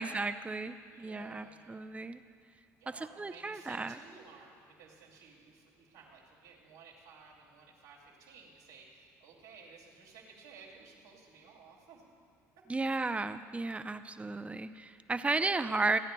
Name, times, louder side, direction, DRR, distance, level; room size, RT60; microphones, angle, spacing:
voice 1, 0.0-2.2 3.0-4.0 12.7-16.0, right 3 dB, 15° right, 10 dB, 0.5 m, -34 dB
voice 2, 0.9-1.9 2.8-12.0 12.8-13.0 15.5-15.6, right 5 dB, 90° right, -5 dB, 2.7 m, -55 dB
27.5 x 9.9 x 2.3 m, 2.2 s
hypercardioid pair, 65°, 8 cm